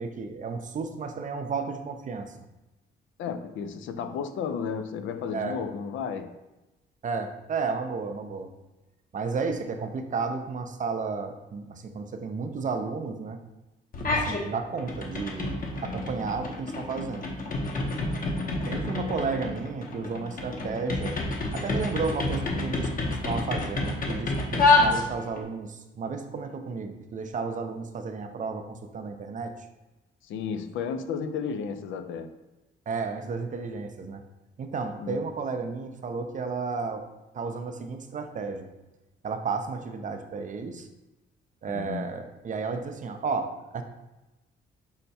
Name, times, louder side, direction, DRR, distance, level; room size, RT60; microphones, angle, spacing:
voice 1, 0.0-2.3 5.3-5.6 7.0-8.5 9.1-13.4 14.1-17.3 18.7-21.2 21.5-22.9 23.2-29.5 32.9-34.2 34.6-37.1 37.3-38.7 39.2-40.9 41.6-43.8, right 4 dB, 40° right, 7 dB, 0.5 m, -32 dB
voice 2, 3.2-6.4 18.9-19.1 30.2-32.3 35.0-35.2 41.7-42.1, left 6 dB, 80° left, 8 dB, 0.5 m, -33 dB
sound 1, 13.9-14.4 14.8-25.4, left 2 dB, 45° left, 0.8 m, -28 dB
5.5 x 2.2 x 4.2 m, 1.0 s
cardioid pair, 90°, 20 cm